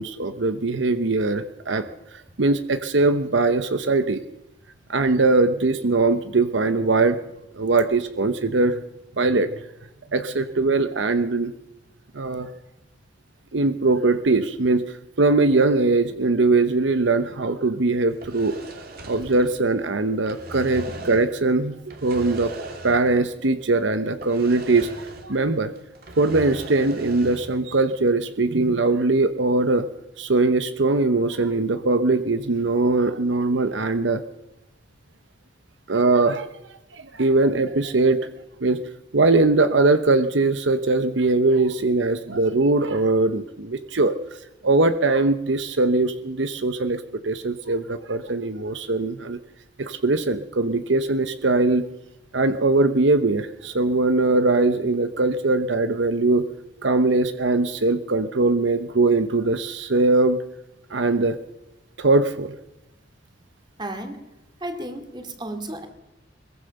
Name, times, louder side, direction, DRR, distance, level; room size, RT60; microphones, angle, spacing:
voice 1, 0.0-1.8 2.1-4.2 4.9-7.2 7.5-8.8 9.2-9.5 10.1-11.5 12.1-12.5 13.5-18.6 19.1-22.5 22.8-25.7 26.1-29.9 30.2-34.2 35.9-36.5 36.9-38.2 38.6-38.8 39.1-44.1 44.6-49.4 49.8-51.9 52.3-56.5 56.8-60.4 60.9-61.4 62.0-62.6, right 3 dB, 75° right, 10 dB, 0.9 m, -21 dB
sound 1, 18.1-19.9 20.1-21.4 21.9-23.3 23.5-23.6 24.2-25.5 25.8-27.6, right 1 dB, 50° right, 2.8 m, -39 dB
voice 2, 63.8-64.2 64.6-65.9, right 1 dB, 25° right, 6 dB, 2.7 m, -33 dB
22.5 x 21.5 x 6.6 m, 0.91 s
head